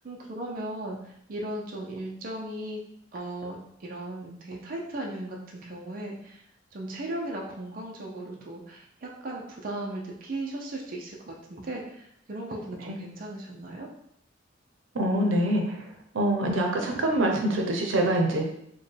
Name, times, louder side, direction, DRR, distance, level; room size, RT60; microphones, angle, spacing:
voice 1, 0.0-1.0 1.3-2.8 3.1-6.4 6.7-13.9, right 1 dB, 45° right, -1 dB, 0.5 m, -37 dB
voice 2, 14.9-15.9 16.1-18.4, right 1 dB, 90° right, 2 dB, 0.7 m, -25 dB
4.3 x 2.2 x 3.3 m, 0.74 s
head